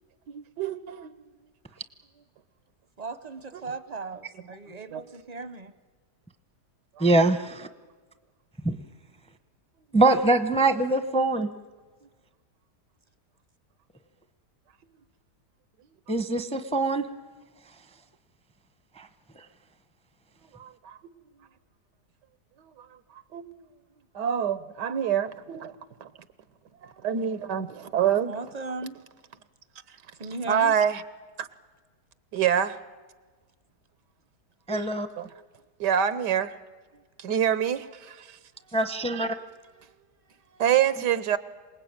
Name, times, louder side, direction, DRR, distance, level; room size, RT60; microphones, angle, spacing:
voice 1, 0.3-1.1 4.9-5.0 7.0-7.1 20.5-21.0 22.6-22.7 23.3-23.4 24.1-25.7 26.0-26.1 26.8-28.3 30.5-31.0 31.4-31.5 32.3-32.8 34.7-34.9 35.2-35.3 35.8-36.5 37.2-38.4 40.6-41.4, right 9 dB, 90° right, 14 dB, 1.6 m, -26 dB
voice 2, 3.0-5.7 28.2-29.0 30.2-30.8, right 3 dB, 35° right, 12 dB, 0.6 m, -37 dB
voice 3, 7.0-7.7 8.6-8.8 9.9-11.5 16.1-17.0 19.0-19.1 34.7-35.1 38.7-39.4, right 2 dB, 5° left, 9 dB, 0.6 m, -23 dB
27.0 x 19.5 x 8.9 m, 1.4 s
omnidirectional pair, 1.8 m